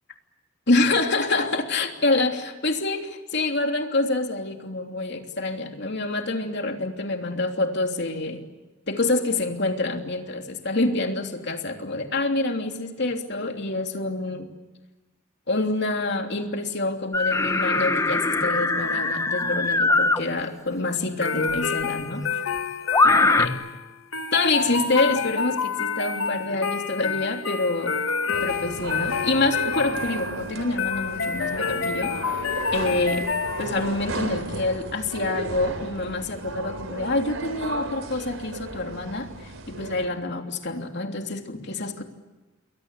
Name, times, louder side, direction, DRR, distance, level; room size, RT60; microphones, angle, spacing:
voice 1, 0.7-8.4 8.9-14.5 15.5-22.2 23.4-23.5 24.3-27.9 28.4-32.1 32.7-33.2 33.6-42.0, left 2 dB, 60° left, 4 dB, 3.2 m, -26 dB
sound 1, 17.1-20.2 21.6-21.7 22.9-23.5, left 3 dB, 15° left, 1.0 m, -21 dB
sound 2, 21.2-34.0, left 6 dB, 90° left, 1.7 m, -28 dB
sound 3, 28.3-40.1, right 2 dB, 85° right, 4.0 m, -35 dB
29.0 x 22.5 x 8.4 m, 1.2 s
head